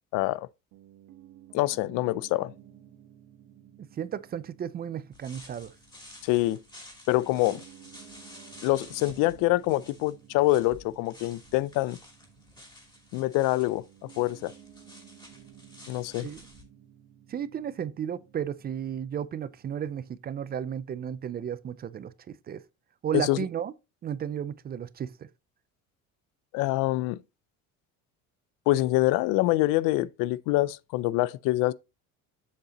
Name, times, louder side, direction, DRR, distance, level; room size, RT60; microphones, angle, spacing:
voice 1, 0.1-0.5 1.5-2.5 6.2-6.6 7.1-7.6 8.6-12.0 13.1-14.5 15.9-16.3 23.1-23.4 26.5-27.2 28.7-31.7, left 18 dB, 80° left, 0.5 m, -25 dB
Piano, 0.7-20.1, right 10 dB, 80° right, 1.6 m, -55 dB
voice 2, 4.0-5.7 16.2-16.4 17.3-22.6 23.0-23.7 24.0-25.3, right 9 dB, 30° right, 0.5 m, -34 dB
sound 1, 5.1-16.6, left 2 dB, 15° left, 2.8 m, -51 dB
7.5 x 6.6 x 2.9 m
cardioid pair, 130°, 32 cm